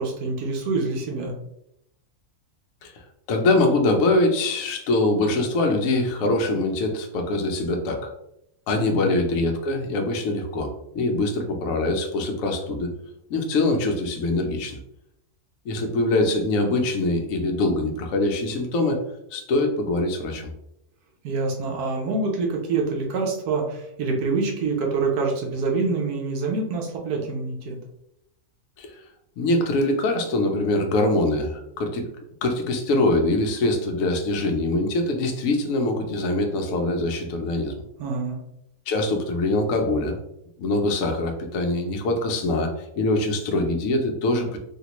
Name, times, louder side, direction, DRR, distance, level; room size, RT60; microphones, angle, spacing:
voice 1, 0.0-1.3 8.7-9.1 21.2-27.8 38.0-38.4, right 3 dB, 75° right, 0 dB, 1.2 m, -26 dB
voice 2, 3.3-8.1 8.7-12.9 13.3-14.8 15.6-19.0 19.3-20.5 28.8-28.9 29.4-32.1 32.4-37.8 38.9-40.2 40.6-44.6, left 2 dB, 65° left, 3 dB, 1.0 m, -23 dB
3.5 x 2.5 x 2.9 m, 0.79 s
omnidirectional pair, 1.6 m